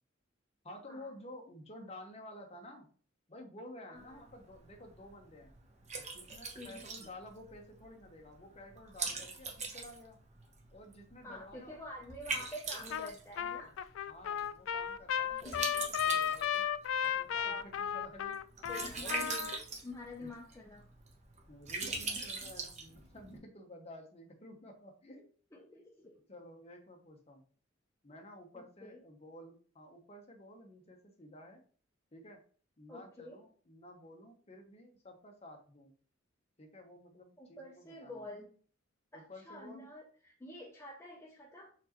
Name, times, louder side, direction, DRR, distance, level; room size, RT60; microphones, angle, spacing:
voice 1, 0.6-2.9 3.3-5.5 6.0-10.2 10.7-11.8 14.1-16.7 17.0-18.4 18.9-19.2 20.2-20.3 21.5-25.3 26.3-27.4 28.0-31.6 32.1-32.4 32.8-35.9 36.6-38.2 39.1-39.9, left 1 dB, 35° left, 3 dB, 1.0 m, -52 dB
voice 2, 3.9-4.2 6.5-6.8 11.2-13.8 15.4-15.6 17.4-17.7 18.7-19.5 19.8-20.9 21.9-22.1 25.5-26.2 28.5-29.0 32.9-33.4 37.4-38.5 39.1-41.7, left 1 dB, 15° left, -2 dB, 0.6 m, -48 dB
Liquid, 4.0-23.4, right 4 dB, 35° right, 0.9 m, -43 dB
Trumpet, 12.9-13.1 13.4-19.6, left 9 dB, 90° left, 0.3 m, -34 dB
4.4 x 4.0 x 3.0 m, 0.43 s
head